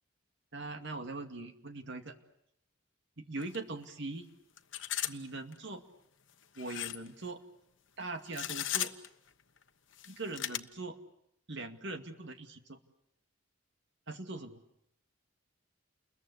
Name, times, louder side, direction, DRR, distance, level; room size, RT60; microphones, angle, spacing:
voice 1, 0.5-2.2 3.2-4.3 5.1-5.8 6.6-7.4 8.0-8.9 10.1-11.0 11.5-12.8 14.1-14.6, right 2 dB, 60° right, 7 dB, 2.3 m, -41 dB
sound 1, 3.4-3.6 3.8-3.9 4.6-5.2 5.5-5.6 6.6-7.1 8.3-9.1 9.9-10.6, left 12 dB, 65° left, 1.2 m, -36 dB
30.0 x 22.0 x 8.2 m, 0.76 s
head